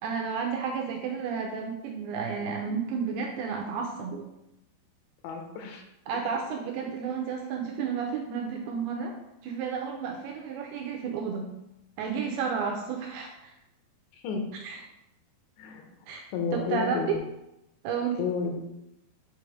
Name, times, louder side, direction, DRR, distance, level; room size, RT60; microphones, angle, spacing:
voice 1, 0.0-4.2 6.1-9.2 9.4-11.5 12.0-13.5 14.6-14.8 16.1-16.2 16.5-17.2 17.8-18.2, right 6 dB, 85° right, 1 dB, 2.4 m, -31 dB
voice 2, 5.2-5.8 14.1-14.4 15.6-15.9 16.3-17.2 18.2-18.6, left 5 dB, 85° left, 3 dB, 3.0 m, -31 dB
7.6 x 3.3 x 4.9 m, 0.86 s
omnidirectional pair, 5.1 m